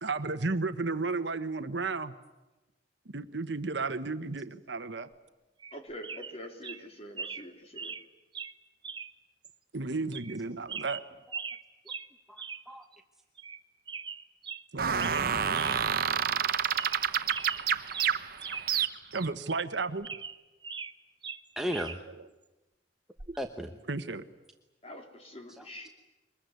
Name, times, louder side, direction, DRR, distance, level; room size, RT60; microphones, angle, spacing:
voice 1, 0.0-2.2 3.1-5.1 9.7-11.0 14.7-15.3 19.1-20.1 22.2-22.3 23.9-24.2, right 3 dB, 70° right, 10 dB, 1.2 m, -33 dB
sound 1, 5.6-5.8 6.0-6.3 6.6-6.8 7.2-7.4 7.8-8.0 8.3-8.5 8.8-9.1 9.4-9.5 10.1-10.4 10.7-11.6 11.9-12.1 12.4-12.6 12.9-13.0 13.4-13.6 13.9-14.6 15.0-15.3 15.5-15.8 16.2-16.3 16.6-17.0 17.3-18.7 19.0-19.1 19.6-20.9 21.2-22.0 23.2-23.4, right 6 dB, 25° right, 1.0 m, -40 dB
voice 2, 5.7-7.9 16.1-16.2 24.8-25.9, equal, 30° left, 3 dB, 3.5 m, -45 dB
voice 3, 12.3-12.8 21.6-22.0 23.4-23.7 25.6-25.9, equal, ahead, 4 dB, 1.0 m, -36 dB
sound 2, 14.8-19.3, right 7 dB, 50° right, 1.0 m, -29 dB
24.0 x 21.0 x 9.5 m, 1.1 s
head